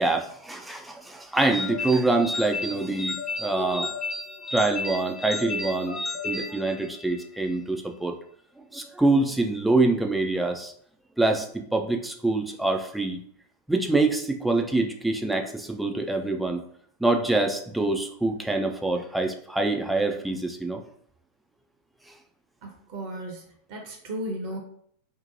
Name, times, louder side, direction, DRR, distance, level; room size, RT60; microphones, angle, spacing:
voice 1, 0.0-3.9 4.5-6.0 6.2-8.1 8.7-10.7 11.2-13.2 13.7-16.6 17.0-20.8, right 2 dB, 5° right, 3 dB, 0.3 m, -25 dB
sound 1, 1.5-7.3, left 3 dB, 25° left, 0.7 m, -33 dB
voice 2, 22.6-23.4 23.7-24.6, right 1 dB, 45° right, 1 dB, 0.6 m, -35 dB
2.7 x 2.1 x 2.7 m, 0.64 s
figure-of-eight pair, 90°, 0 cm